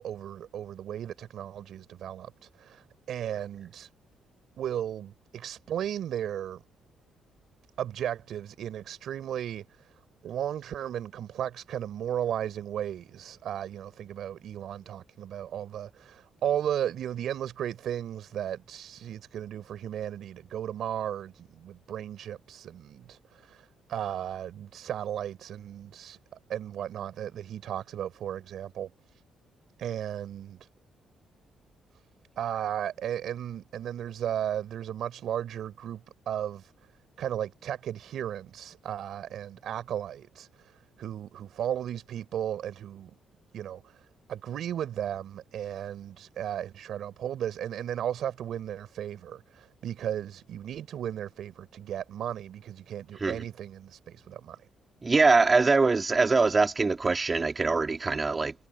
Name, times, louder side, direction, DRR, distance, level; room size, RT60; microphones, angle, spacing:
voice 1, 0.0-3.9 4.6-6.6 7.8-9.9 10.2-26.2 26.5-29.2 29.8-30.7 32.4-36.7 37.2-43.1 43.5-54.6, right 10 dB, 70° right, 6.5 m, -35 dB
voice 2, 55.0-58.5, right 3 dB, 30° right, 3.6 m, -23 dB
cardioid pair, 90°, 0 cm